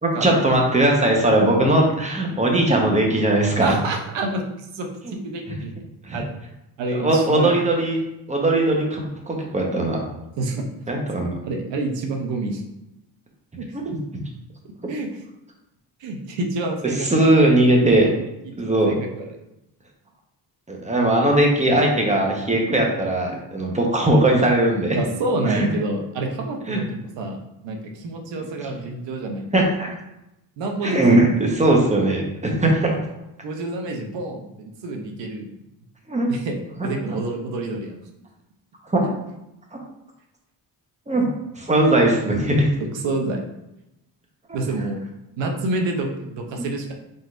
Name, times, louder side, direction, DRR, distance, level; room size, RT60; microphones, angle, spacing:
voice 1, 0.0-3.8 5.0-5.2 6.0-6.2 6.9-8.0 8.3-10.0 10.9-11.4 17.0-18.1 18.5-18.9 20.7-25.0 25.5-25.7 26.7-26.8 29.5-29.9 30.8-33.0 36.1-36.3 36.8-36.9 38.9-39.0 41.1-41.3 41.5-42.7, right 1 dB, 15° right, 0 dB, 1.0 m, -19 dB
voice 2, 3.6-5.7 6.1-6.3 6.8-7.5 10.4-10.7 11.5-12.6 13.6-13.9 14.9-15.1 16.0-17.3 18.1-19.3 25.0-27.4 27.6-29.5 30.6-31.3 33.4-35.5 36.3-38.0 39.0-39.2 42.8-43.4 44.5-45.0 45.4-46.9, right 2 dB, 80° right, 3 dB, 0.8 m, -28 dB
3.9 x 3.8 x 2.5 m, 0.89 s
cardioid pair, 80°, 43 cm